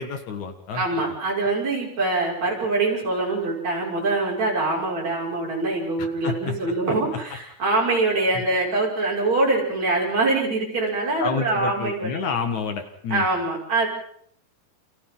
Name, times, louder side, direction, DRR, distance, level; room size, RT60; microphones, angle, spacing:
voice 1, 0.0-0.8 6.0-6.5 8.3-8.4 11.2-13.2, left 5 dB, 60° left, 6 dB, 3.0 m, -29 dB
voice 2, 0.7-12.2 13.1-13.9, right 2 dB, 55° right, -3 dB, 7.7 m, -24 dB
29.5 x 29.0 x 4.0 m, 0.65 s
omnidirectional pair, 3.8 m